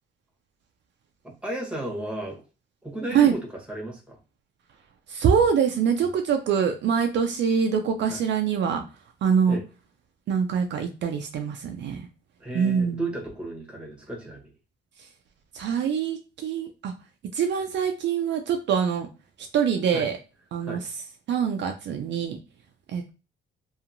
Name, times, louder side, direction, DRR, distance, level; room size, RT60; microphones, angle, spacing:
voice 1, 1.4-2.4 2.8-4.2 8.1-8.2 9.5-9.6 12.4-14.5 19.9-20.1 20.6-20.8, right 1 dB, 5° right, 0 dB, 1.0 m, -34 dB
voice 2, 5.1-8.8 9.2-9.6 10.3-12.0 12.5-13.1 15.5-16.9 17.3-19.1 19.5-20.2 20.5-20.8 21.3-22.4 22.9-23.1, right 7 dB, 65° right, 5 dB, 0.4 m, -24 dB
2.8 x 2.4 x 2.5 m, 0.32 s
cardioid pair, 90°, 20 cm